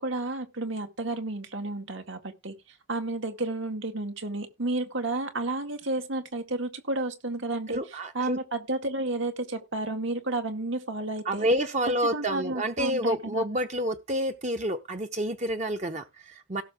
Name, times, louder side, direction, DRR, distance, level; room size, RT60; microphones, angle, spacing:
voice 1, 0.0-11.5 12.1-13.4, right 2 dB, 65° right, 1.9 m, -32 dB
voice 2, 7.7-8.4 11.3-16.6, equal, 35° right, 0.8 m, -29 dB
17.0 x 6.7 x 3.6 m
head